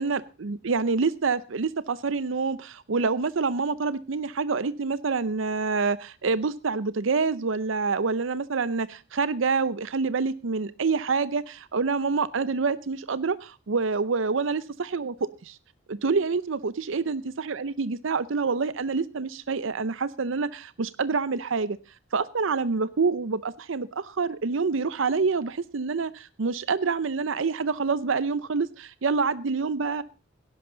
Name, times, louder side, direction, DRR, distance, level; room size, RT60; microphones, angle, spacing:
voice 1, 0.0-15.6 15.9-21.8 22.1-30.0, right 4 dB, 70° right, 17 dB, 0.6 m, -27 dB
17.5 x 11.0 x 3.9 m, 0.32 s
head